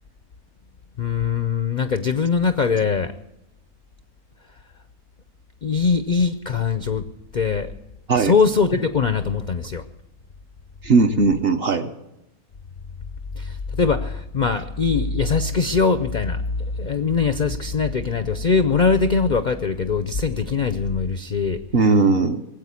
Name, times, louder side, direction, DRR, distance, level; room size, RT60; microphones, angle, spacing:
voice 1, 1.0-3.1 5.6-7.1 7.3-7.7 8.1-9.9 13.4-21.6, left 5 dB, 55° left, 10 dB, 0.5 m, -22 dB
voice 2, 10.8-11.9 21.7-22.4, right 3 dB, 50° right, 7 dB, 0.9 m, -18 dB
19.5 x 8.1 x 8.3 m, 0.89 s
omnidirectional pair, 1.6 m